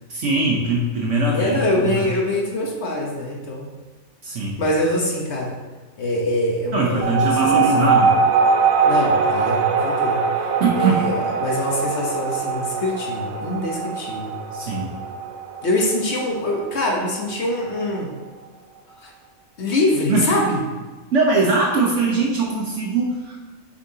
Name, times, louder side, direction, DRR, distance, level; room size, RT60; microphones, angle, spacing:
voice 1, 0.1-2.1 4.2-4.6 6.7-8.3 10.6-11.0 14.5-14.9 20.1-20.2 21.1-23.4, right 3 dB, 65° right, -2 dB, 1.2 m, -21 dB
voice 2, 1.3-3.7 4.6-5.6 6.0-8.0 8.8-10.5 10.7-14.3 15.6-18.1 19.0-19.1 19.6-20.6, left 1 dB, 55° left, 0 dB, 1.2 m, -24 dB
sound 1, 7.0-17.9, right 5 dB, 90° right, 1.1 m, -22 dB
8.2 x 5.8 x 2.8 m, 1.3 s
omnidirectional pair, 1.4 m